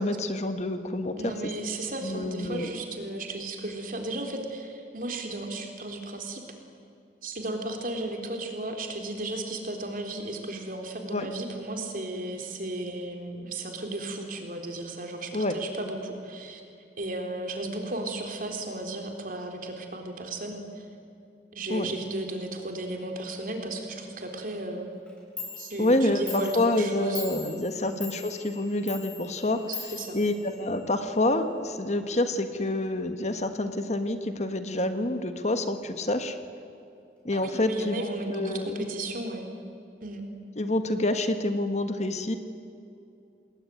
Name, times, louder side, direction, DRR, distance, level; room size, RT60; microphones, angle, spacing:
voice 1, 0.0-1.3 2.0-2.8 11.1-11.3 15.3-15.5 21.7-21.9 25.8-36.3 37.2-38.8 40.6-42.4, left 1 dB, 40° left, 8 dB, 1.6 m, -28 dB
voice 2, 1.2-6.4 7.2-16.6 17.0-20.8 21.5-24.9 25.5-27.5 27.8-28.1 29.9-30.2 37.3-39.5 40.0-40.2, right 2 dB, 50° right, 3 dB, 3.8 m, -35 dB
Clock, 25.1-25.2 25.4-31.0, left 4 dB, 5° left, 7.8 m, -42 dB
28.0 x 21.0 x 9.4 m, 2.7 s
head